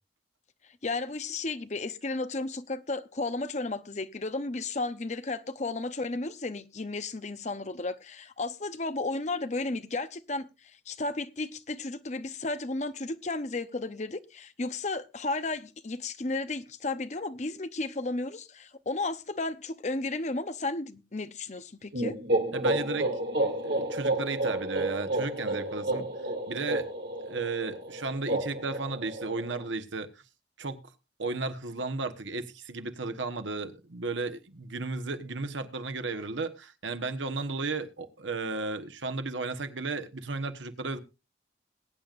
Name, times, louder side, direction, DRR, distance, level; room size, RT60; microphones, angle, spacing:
voice 1, 0.8-10.5 10.9-22.2, left 3 dB, 40° left, 0.8 m, -33 dB
sound 1, 21.9-29.6, right 1 dB, 65° right, 2.8 m, -31 dB
voice 2, 22.5-23.1 23.6-26.1 26.5-26.9 27.2-30.1 30.6-30.8 31.2-41.0, right 3 dB, 90° right, 1.2 m, -34 dB
21.0 x 9.2 x 2.5 m
head